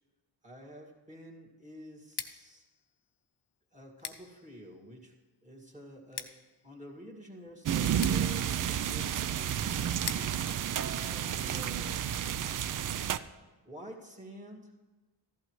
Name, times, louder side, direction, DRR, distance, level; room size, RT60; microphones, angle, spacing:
voice 1, 0.4-2.7 3.7-5.1 5.4-9.9 10.7-12.2 13.6-14.8, equal, 15° right, -1 dB, 2.0 m, -49 dB
Scissors, 2.0-11.8, left 8 dB, 60° left, 0.8 m, -47 dB
sound 1, 7.7-13.2, right 9 dB, 45° right, 0.4 m, -31 dB
15.0 x 11.5 x 3.2 m, 1.2 s
cardioid pair, 100°, 45 cm